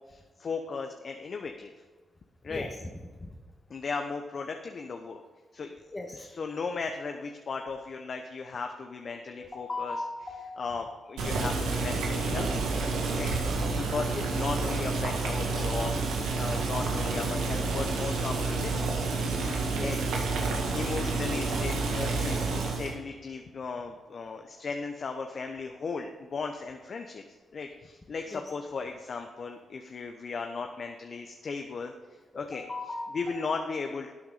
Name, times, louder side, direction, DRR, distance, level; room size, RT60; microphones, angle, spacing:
voice 1, 0.1-1.7 2.4-2.7 3.7-5.2 5.5-5.8 6.1-10.0 10.6-12.7 13.1-15.9 16.3-19.1 19.8-20.0 20.7-27.2 27.5-31.9 32.3-32.6 33.1-34.1, left 4 dB, 60° left, 4 dB, 0.9 m, -36 dB
voice 2, 5.9-6.3 9.4-10.6 19.7-20.0 28.3-28.4 32.3-33.4, left 2 dB, 30° left, 1 dB, 1.6 m, -37 dB
Boiling, 11.2-23.0, right 3 dB, 90° right, 1.8 m, -29 dB
12.0 x 8.7 x 4.2 m, 1.4 s
supercardioid pair, 50°, 0 cm